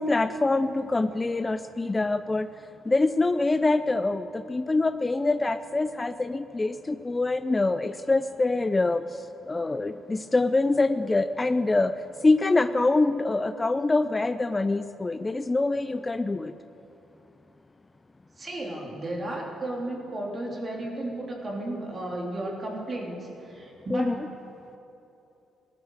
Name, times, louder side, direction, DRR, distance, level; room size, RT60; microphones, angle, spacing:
voice 1, 0.0-2.5 2.9-4.2 4.5-9.0 9.5-11.9 12.2-16.5 23.9-24.2, left 2 dB, 20° left, 12 dB, 0.4 m, -25 dB
voice 2, 18.4-24.1, right 1 dB, 35° right, -1 dB, 3.5 m, -34 dB
18.5 x 12.0 x 6.6 m, 3.0 s
cardioid pair, 90°, 0 cm